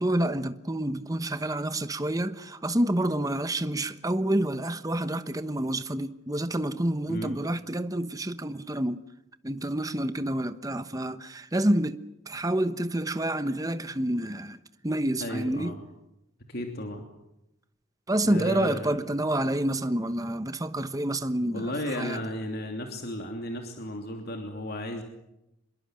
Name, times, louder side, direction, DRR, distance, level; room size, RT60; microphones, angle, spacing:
voice 1, 0.0-9.0 9.4-14.6 14.8-15.7 18.1-22.2, right 1 dB, 15° right, 1.1 m, -28 dB
voice 2, 15.2-15.8 16.5-17.0 18.2-19.0 21.4-25.0, left 1 dB, 50° left, 3.0 m, -34 dB
26.5 x 22.0 x 7.7 m
head